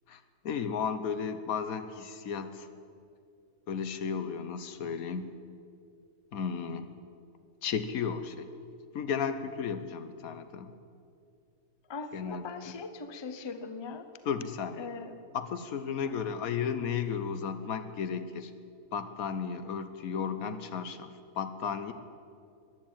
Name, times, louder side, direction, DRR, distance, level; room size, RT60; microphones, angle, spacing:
voice 1, 0.1-2.7 3.7-5.4 6.3-6.9 7.6-8.5 8.9-10.7 12.1-12.8 14.2-14.9 15.3-18.5 18.9-21.1 21.3-21.9, left 6 dB, 75° left, 10 dB, 1.3 m, -34 dB
voice 2, 11.9-14.1 14.8-15.1 16.0-16.2, left 4 dB, 25° left, 10 dB, 0.6 m, -40 dB
15.0 x 10.5 x 8.9 m, 2.5 s
omnidirectional pair, 1.5 m